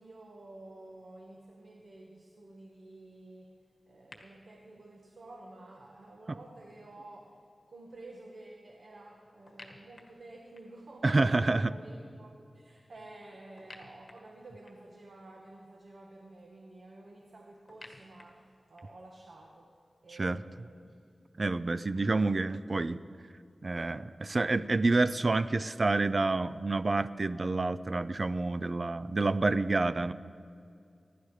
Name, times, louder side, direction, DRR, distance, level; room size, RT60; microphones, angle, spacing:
voice 1, 0.0-3.6 3.9-7.4 7.7-19.7 20.0-21.0, right 2 dB, 75° right, 0 dB, 1.4 m, -51 dB
sound 1, 4.1-4.2 9.5-10.9 13.6-15.0 17.7-19.1, left 2 dB, 50° left, 1.7 m, -53 dB
voice 2, 11.0-11.7 20.2-20.4 21.4-23.0 23.6-30.1, right 3 dB, 50° right, 14 dB, 0.5 m, -28 dB
25.5 x 12.0 x 3.3 m, 2.4 s
cardioid pair, 50°, 0 cm